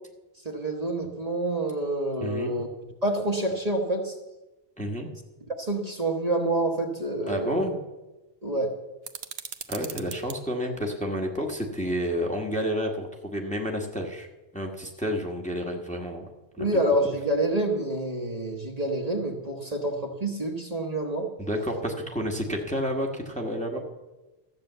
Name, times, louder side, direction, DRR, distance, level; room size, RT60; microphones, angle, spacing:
voice 1, 0.4-2.7 3.0-4.2 5.6-7.7 8.4-8.7 16.6-21.3 23.7-23.8, right 1 dB, 40° right, 2 dB, 1.3 m, -27 dB
voice 2, 2.2-2.6 4.8-5.1 7.3-7.8 9.7-14.3 14.5-16.3 16.6-16.7 21.4-23.8, equal, 5° left, 0 dB, 1.3 m, -30 dB
sound 1, 9.0-10.4, right 7 dB, 75° right, 1.0 m, -39 dB
13.5 x 6.8 x 7.9 m, 1.1 s
omnidirectional pair, 1.0 m